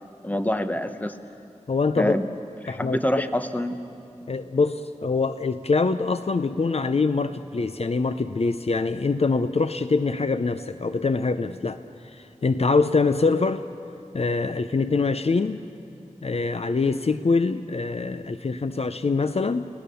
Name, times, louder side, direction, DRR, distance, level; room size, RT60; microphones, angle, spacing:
voice 1, 0.2-1.2 2.0-2.3 2.6-3.8, left 1 dB, 15° left, 9 dB, 1.1 m, -25 dB
voice 2, 1.7-2.2 2.7-3.0 4.3-13.7 14.1-15.6 16.2-19.7, left 4 dB, 55° left, 11 dB, 0.6 m, -24 dB
29.5 x 17.5 x 6.9 m, 2.5 s
wide cardioid pair, 75°, 12 cm